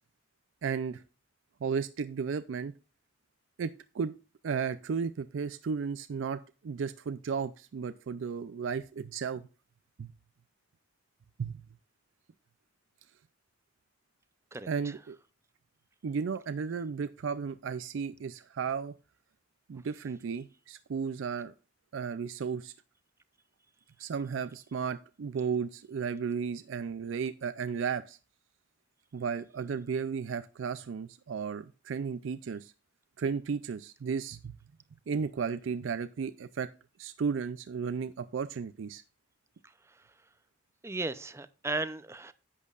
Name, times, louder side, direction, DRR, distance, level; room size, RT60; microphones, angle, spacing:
voice 1, 0.6-1.0 1.6-2.7 3.6-4.1 4.4-9.4 10.0-10.1 11.4-11.6 14.7-15.2 16.0-18.9 19.7-21.5 21.9-22.7 24.0-28.2 29.1-32.7 33.2-34.6 35.1-36.7 37.0-39.0, right 6 dB, 70° right, 0.4 m, -34 dB
voice 2, 14.5-14.9 40.8-42.3, right 2 dB, 15° right, 0.5 m, -35 dB
10.5 x 8.4 x 2.4 m
head